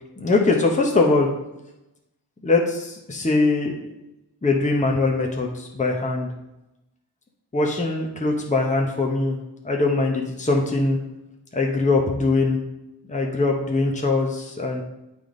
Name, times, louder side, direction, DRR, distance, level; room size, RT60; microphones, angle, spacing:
voice 1, 0.2-1.3 2.4-3.9 4.4-6.3 7.5-9.4 9.6-11.0 11.5-12.6 13.1-14.8, left 3 dB, 20° left, 0 dB, 0.9 m, -22 dB
9.0 x 3.5 x 3.9 m, 0.93 s
cardioid pair, 70°, 40 cm